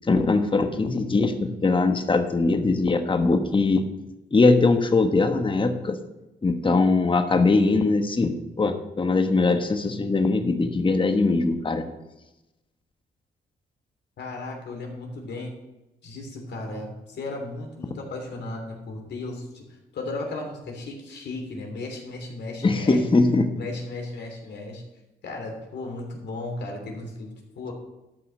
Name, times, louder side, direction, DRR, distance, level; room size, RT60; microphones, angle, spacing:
voice 1, 0.1-3.8 4.3-6.0 6.4-8.3 8.6-11.8 22.6-23.5, left 3 dB, 25° left, 7 dB, 1.2 m, -21 dB
voice 2, 14.2-15.6 16.0-19.7 19.9-23.0 23.5-24.8 25.2-27.7, left 2 dB, 65° left, 1 dB, 3.1 m, -35 dB
12.5 x 5.6 x 6.5 m, 0.98 s
cardioid pair, 75°, 19 cm